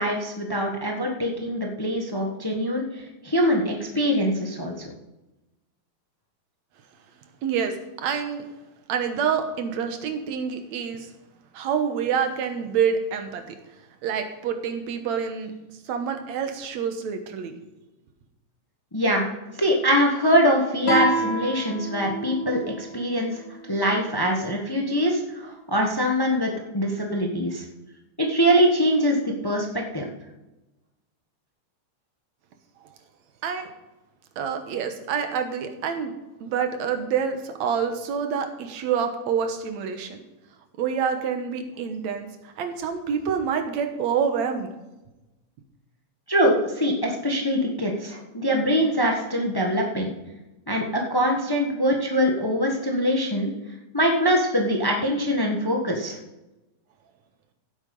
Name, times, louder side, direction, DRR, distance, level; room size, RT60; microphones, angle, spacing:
voice 1, 0.0-4.9 18.9-19.3 19.6-23.4 23.7-27.6 28.2-30.1 46.3-50.1 50.7-53.5 53.9-56.2, equal, 35° left, 1 dB, 0.3 m, -23 dB
voice 2, 7.4-7.8 8.0-8.4 8.9-11.1 11.5-13.6 14.0-15.5 15.8-17.5 33.4-33.7 34.4-36.1 36.4-40.2 40.8-44.7, right 7 dB, 70° right, 6 dB, 2.5 m, -27 dB
Guitar, 20.8-24.1, right 2 dB, 85° left, 3.5 m, -29 dB
16.0 x 8.1 x 5.4 m, 1.0 s
omnidirectional pair, 3.4 m